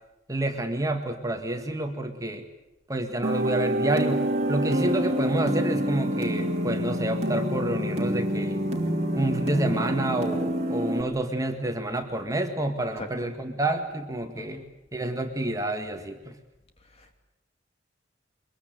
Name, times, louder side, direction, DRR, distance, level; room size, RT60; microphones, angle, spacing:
voice 1, 0.3-2.4 2.9-4.2 4.5-8.6 9.1-14.6 14.9-16.3, right 1 dB, 20° right, 5 dB, 1.8 m, -28 dB
sound 1, 3.2-11.0, right 1 dB, 35° right, 3.3 m, -27 dB
voice 2, 13.0-13.3 14.3-14.7 16.9-17.1, left 1 dB, 35° left, 5 dB, 2.8 m, -41 dB
23.5 x 21.5 x 9.3 m, 0.95 s
head